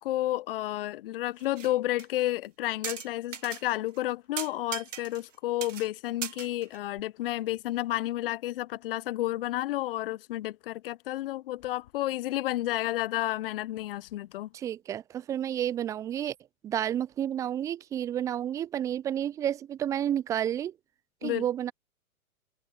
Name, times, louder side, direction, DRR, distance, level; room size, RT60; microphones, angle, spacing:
voice 1, 0.0-14.5 21.2-21.4, left 15 dB, 40° left, 1.3 m, -31 dB
sound 1, 1.4-1.7 2.0-2.1 2.8-3.6 4.0-4.1 4.4-5.3 5.6-5.9 6.2-7.0, right 9 dB, 60° right, 1.9 m, -38 dB
voice 2, 14.5-16.3 16.6-20.7 21.2-21.7, right 10 dB, 10° right, 0.6 m, -30 dB
figure-of-eight pair, 120°, 43 cm